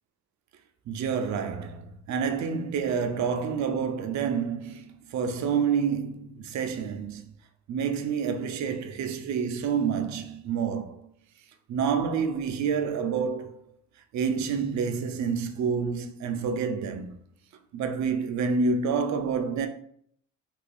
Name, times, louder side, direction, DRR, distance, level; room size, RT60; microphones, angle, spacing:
voice 1, 0.9-7.3 7.7-11.0 11.7-13.7 14.1-17.2 17.7-19.7, right 6 dB, 65° right, 0.5 m, -28 dB
2.9 x 2.5 x 3.4 m
cardioid pair, 90°, 30 cm